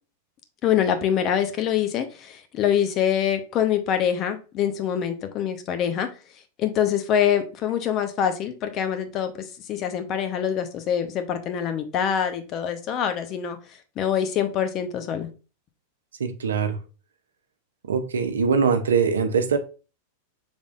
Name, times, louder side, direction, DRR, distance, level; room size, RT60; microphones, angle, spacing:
voice 1, 0.6-6.1 6.6-9.3 9.7-13.6 14.0-15.3, left 9 dB, 40° left, 0.8 m, -24 dB
voice 2, 16.2-16.8 17.9-19.6, right 5 dB, 90° right, 0.6 m, -22 dB
5.4 x 3.5 x 2.5 m
hypercardioid pair, 110°, 0 cm